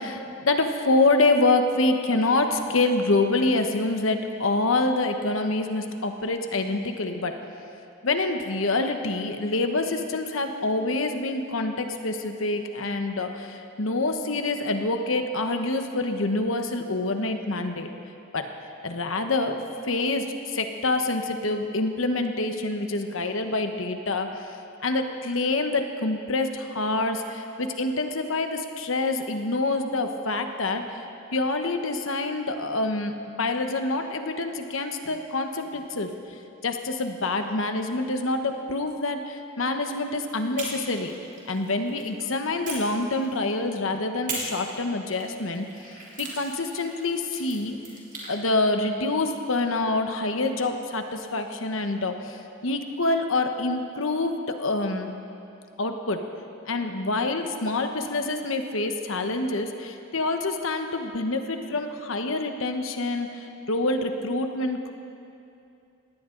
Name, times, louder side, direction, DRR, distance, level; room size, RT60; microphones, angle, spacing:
voice 1, 0.0-7.3 8.0-17.9 18.3-18.5 18.8-24.5 24.8-31.0 31.3-36.1 36.6-41.1 41.5-45.7 46.2-47.8 48.3-52.4 52.6-55.1 55.8-56.2 56.7-64.9, left 2 dB, 70° left, 6 dB, 1.2 m, -26 dB
sound 1, 40.5-42.1 42.6-43.7 44.3-48.3, right 3 dB, 40° right, 3.6 m, -39 dB
19.5 x 17.5 x 3.9 m, 2.7 s
head